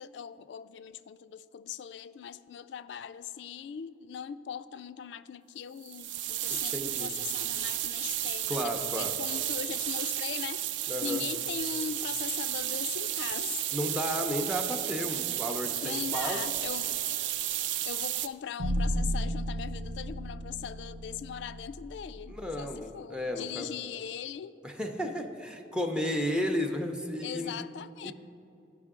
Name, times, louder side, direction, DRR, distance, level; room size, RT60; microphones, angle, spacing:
voice 1, 0.0-10.7 11.0-13.6 15.8-17.6 17.9-24.6 27.2-28.1, left 8 dB, 75° left, 14 dB, 0.3 m, -40 dB
sound 1, 5.8-18.3, right 12 dB, 85° right, 0.4 m, -33 dB
voice 2, 6.5-7.1 8.5-9.1 10.9-11.2 13.7-16.4 22.3-23.7 24.6-27.5 28.0-28.1, equal, 5° right, 4 dB, 0.5 m, -33 dB
sound 2, 18.6-22.8, equal, 60° right, 1.0 m, -34 dB
14.5 x 5.2 x 3.6 m, 2.9 s
head